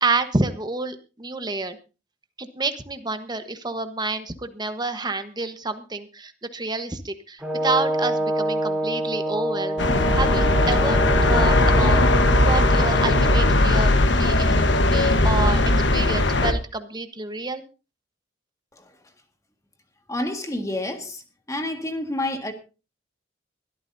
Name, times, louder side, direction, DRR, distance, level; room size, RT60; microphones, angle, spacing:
voice 1, 0.0-1.8 2.4-9.8 10.1-12.0 12.4-17.6, right 3 dB, 20° right, 1.2 m, -28 dB
Brass instrument, 7.4-13.5, right 1 dB, 5° right, 3.3 m, -27 dB
sound 1, 9.8-16.5, left 2 dB, 65° left, 1.3 m, -18 dB
voice 2, 20.1-21.2 21.5-22.5, left 1 dB, 15° left, 1.8 m, -28 dB
22.5 x 13.0 x 2.7 m
head